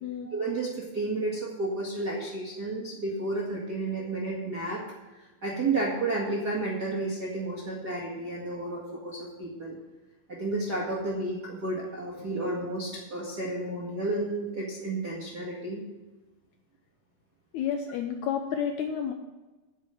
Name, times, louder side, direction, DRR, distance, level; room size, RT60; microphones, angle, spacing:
voice 1, 0.2-4.8 5.4-9.8 10.3-15.8, right 2 dB, 35° right, -5 dB, 1.9 m, -31 dB
voice 2, 17.5-19.1, left 8 dB, 85° left, 5 dB, 1.6 m, -30 dB
10.0 x 7.4 x 7.8 m, 1.2 s
omnidirectional pair, 4.4 m